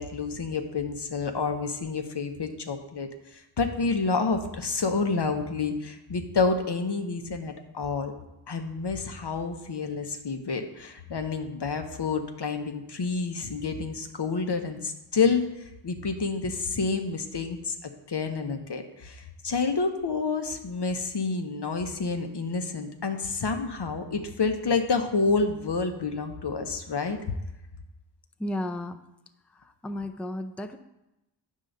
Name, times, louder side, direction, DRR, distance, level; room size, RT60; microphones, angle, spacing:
voice 1, 0.0-8.1 8.5-15.5 15.8-27.2, left 4 dB, 70° left, 5 dB, 0.9 m, -29 dB
voice 2, 28.4-29.0 29.8-30.8, left 1 dB, 5° left, 8 dB, 0.4 m, -33 dB
9.3 x 3.7 x 6.4 m, 0.94 s
wide cardioid pair, 55°, 42 cm